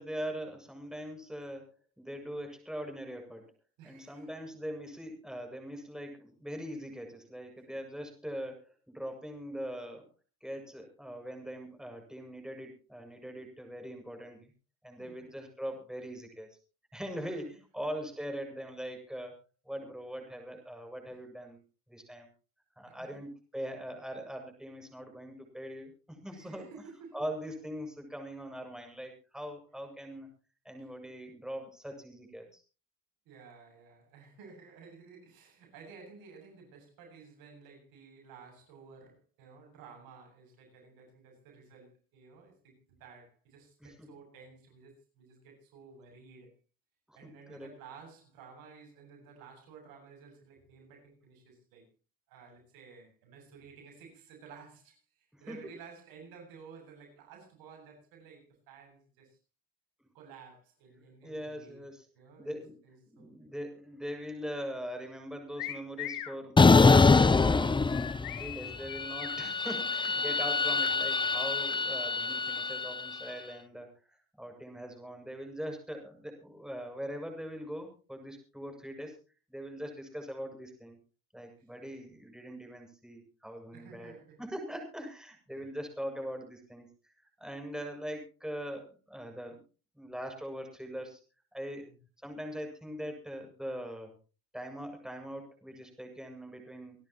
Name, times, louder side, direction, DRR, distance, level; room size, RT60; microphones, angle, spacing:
voice 1, 0.0-1.7 2.0-3.4 3.8-10.1 10.4-14.5 14.8-16.6 16.9-19.3 19.7-21.6 21.9-22.3 22.8-26.7 27.1-30.3 30.7-32.6 43.8-44.1 47.1-47.2 47.5-47.7 55.3-55.7 61.2-62.1 62.4-62.8 63.1-67.9 68.4-79.2 79.5-81.0 81.3-84.1 84.4-89.6 90.0-91.2 91.5-91.8 92.2-94.2 94.5-97.0, equal, ahead, 3 dB, 7.2 m, -41 dB
voice 2, 3.8-4.4 15.0-15.3 17.0-17.4 21.1-21.2 22.9-23.2 26.3-27.2 30.8-30.9 33.2-46.5 47.1-51.9 52.3-59.4 60.1-61.8 62.1-63.5 69.4-69.6 70.0-70.4 70.8-70.9 71.1-71.3 81.6-81.7 83.7-84.4 85.5-85.7 91.9-92.0, right 5 dB, 80° right, 3 dB, 7.8 m, -54 dB
sound 1, 65.6-66.4 67.9-69.4, left 12 dB, 75° left, 2.6 m, -40 dB
sound 2, 66.6-68.5 68.8-73.2, left 4 dB, 15° left, 0.7 m, -24 dB
27.0 x 12.0 x 3.1 m, 0.35 s
supercardioid pair, 80°, 35 cm